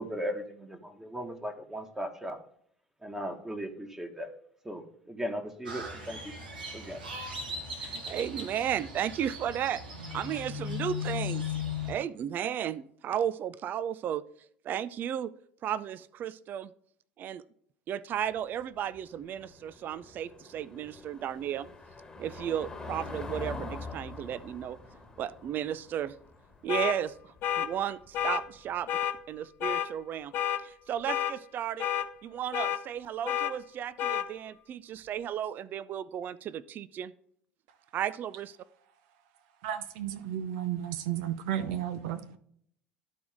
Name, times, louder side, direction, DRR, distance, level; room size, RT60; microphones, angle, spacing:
voice 1, 0.0-2.4 3.0-4.3 4.6-6.3 6.7-7.0, equal, 10° right, 4 dB, 1.5 m, -37 dB
Crow, 5.7-11.9, left 4 dB, 80° right, 1.6 m, -37 dB
voice 2, 7.8-9.8 10.1-14.2 14.6-15.3 15.6-16.7 17.2-17.4 17.9-21.7 22.2-24.8 25.2-26.2 26.6-28.9 29.3-30.3 30.6-31.9 32.2-37.1 37.9-38.6, right 9 dB, 40° right, 17 dB, 0.4 m, -34 dB
Car passing by / Engine, 18.1-28.8, left 3 dB, 15° left, 1.4 m, -45 dB
sound 1, 26.7-27.0 27.4-27.7 28.1-28.4 28.9-29.1 29.6-29.9 30.3-30.6 31.1-31.3 31.8-32.1 32.5-32.8 33.3-33.5 34.0-34.3, left 10 dB, 50° left, 0.7 m, -29 dB
voice 3, 39.6-42.4, right 10 dB, 65° right, 9 dB, 0.8 m, -33 dB
12.5 x 4.6 x 3.6 m, 0.64 s
figure-of-eight pair, 65°, 5 cm